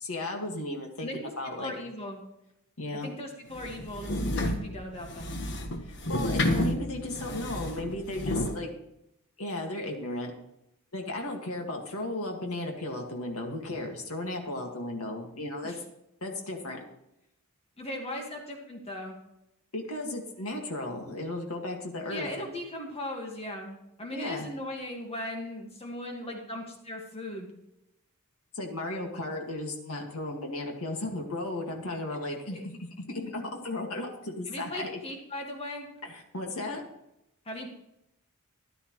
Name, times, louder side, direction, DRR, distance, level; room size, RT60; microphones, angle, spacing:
voice 1, 0.0-1.7 2.8-3.1 5.8-8.7 9.4-10.3 10.9-15.7 16.2-16.8 19.7-22.3 24.1-24.5 28.5-32.6 33.1-34.9 36.0-36.8, left 2 dB, 70° left, 1 dB, 2.1 m, -35 dB
voice 2, 1.0-1.3 1.6-2.2 2.9-5.3 15.6-15.8 17.8-19.2 22.1-27.5 32.5-32.6 34.5-35.9 37.5-37.7, left 1 dB, 30° left, 1 dB, 1.9 m, -38 dB
sound 1, 3.5-8.6, left 1 dB, 55° left, 1.4 m, -30 dB
14.5 x 11.5 x 3.2 m, 0.83 s
head